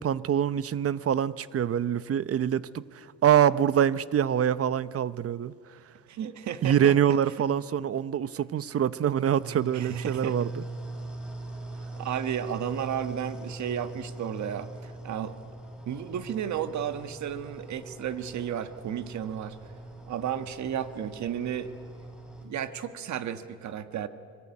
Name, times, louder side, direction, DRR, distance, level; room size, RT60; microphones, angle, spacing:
voice 1, 0.0-5.5 6.6-10.6, right 9 dB, 50° right, 17 dB, 0.8 m, -25 dB
voice 2, 6.1-6.9 9.7-10.4 12.0-15.4 15.8-19.6 20.1-21.7 22.4-24.1, right 9 dB, 70° right, 10 dB, 1.5 m, -33 dB
sound 1, 9.4-22.4, right 2 dB, 5° right, 6.5 m, -41 dB
25.5 x 22.0 x 9.8 m, 2.3 s
cardioid pair, 90°, 30 cm